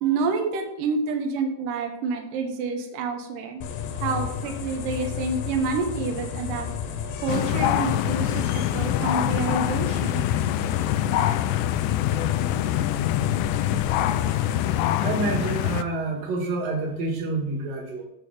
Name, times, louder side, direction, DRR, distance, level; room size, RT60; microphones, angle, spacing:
voice 1, 0.0-3.6 4.0-6.7 7.2-10.2, right 4 dB, 85° right, 3 dB, 1.9 m, -28 dB
sound 1, 3.6-14.7, left 8 dB, 75° left, 3.1 m, -32 dB
sound 2, 7.3-15.8, left 12 dB, 90° left, 2.4 m, -25 dB
voice 2, 15.0-18.1, right 3 dB, 55° right, 1 dB, 2.9 m, -28 dB
11.5 x 5.5 x 4.9 m, 0.83 s
omnidirectional pair, 5.4 m